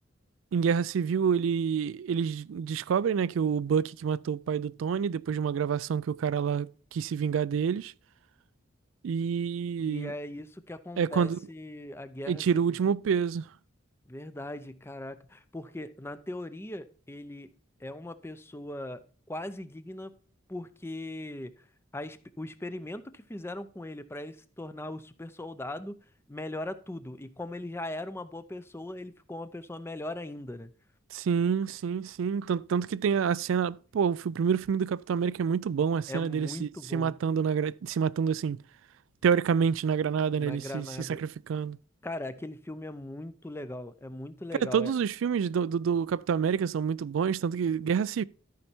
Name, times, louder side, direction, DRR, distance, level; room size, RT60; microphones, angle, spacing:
voice 1, 0.5-7.9 9.0-10.1 11.0-11.4 12.3-13.5 31.1-38.6 39.2-41.8 44.6-48.2, right 7 dB, 80° right, 0.3 m, -28 dB
voice 2, 9.8-12.6 14.1-17.5 17.8-19.0 19.3-20.1 20.5-21.5 21.9-26.0 26.3-30.7 36.1-37.2 40.4-41.2 42.0-44.9, left 1 dB, 10° left, 0.5 m, -39 dB
13.0 x 5.6 x 4.4 m
head